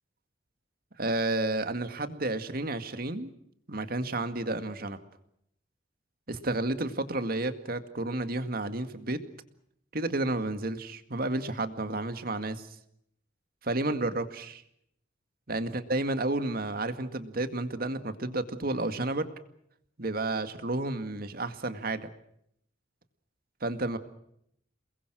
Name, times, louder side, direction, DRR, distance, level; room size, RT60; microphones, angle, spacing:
voice 1, 1.0-3.3 3.7-5.0 6.3-9.2 9.9-12.7 13.6-14.6 15.5-19.2 20.0-22.1 23.6-24.0, right 2 dB, 50° right, 10 dB, 2.1 m, -31 dB
29.0 x 21.5 x 6.3 m, 0.73 s
head